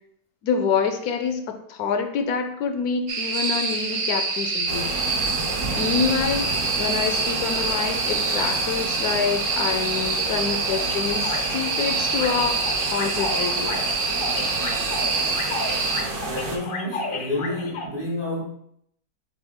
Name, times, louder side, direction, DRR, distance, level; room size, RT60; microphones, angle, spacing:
voice 1, 0.4-4.9 5.7-13.8, left 6 dB, 80° left, 1.1 m, -27 dB
sound 1, 3.1-16.0, right 4 dB, 55° right, 0.8 m, -26 dB
sound 2, 4.7-16.6, right 3 dB, 75° right, 1.3 m, -31 dB
sound 3, 10.7-17.9, left 3 dB, 55° left, 0.6 m, -33 dB
voice 2, 16.2-18.4, left 1 dB, 40° right, 0.3 m, -29 dB
4.0 x 3.4 x 3.6 m
omnidirectional pair, 1.6 m